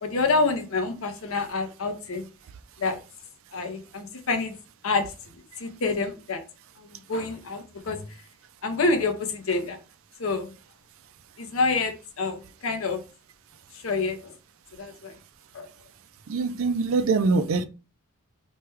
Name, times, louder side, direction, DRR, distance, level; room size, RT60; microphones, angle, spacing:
voice 1, 0.0-2.3 2.8-3.0 3.5-4.6 4.8-5.0 5.6-6.4 6.8-8.1 8.6-9.8 10.2-10.5 11.4-13.0 13.7-14.3 14.8-15.1 15.5-15.7, left 3 dB, 65° left, 0.7 m, -27 dB
voice 2, 16.3-17.6, right 4 dB, 65° right, 0.4 m, -23 dB
3.2 x 2.2 x 3.1 m
head